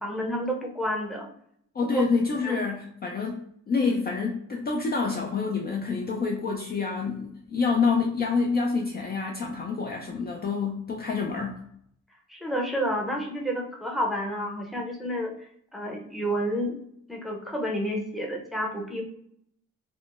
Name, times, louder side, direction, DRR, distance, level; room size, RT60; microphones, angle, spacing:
voice 1, 0.0-1.3 1.8-2.0 2.4-2.6 3.8-3.9 12.3-16.8 17.1-19.1, equal, ahead, -1 dB, 0.7 m, -30 dB
voice 2, 1.7-11.6, left 4 dB, 30° left, 0 dB, 0.4 m, -27 dB
3.5 x 2.1 x 2.4 m, 0.69 s
cardioid pair, 90°, 30 cm